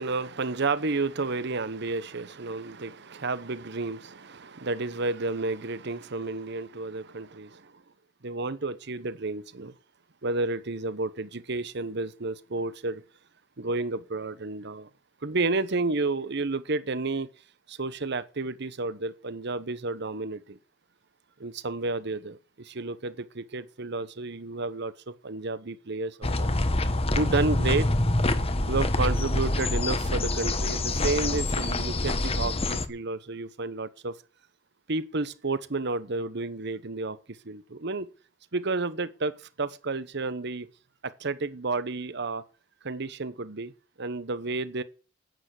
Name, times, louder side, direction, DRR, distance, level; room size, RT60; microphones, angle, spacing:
voice 1, 0.0-7.7 8.2-9.7 10.2-13.0 13.6-14.9 15.2-17.3 17.7-20.6 21.4-26.5 27.1-27.9 28.7-34.1 34.9-37.2 37.4-38.1 38.5-39.3 39.6-40.7 41.0-42.4 42.8-43.7 44.0-44.8, right 3 dB, 55° right, 1.0 m, -31 dB
sound 1, 26.2-32.8, left 2 dB, 30° left, 1.2 m, -26 dB
10.5 x 9.1 x 8.2 m
head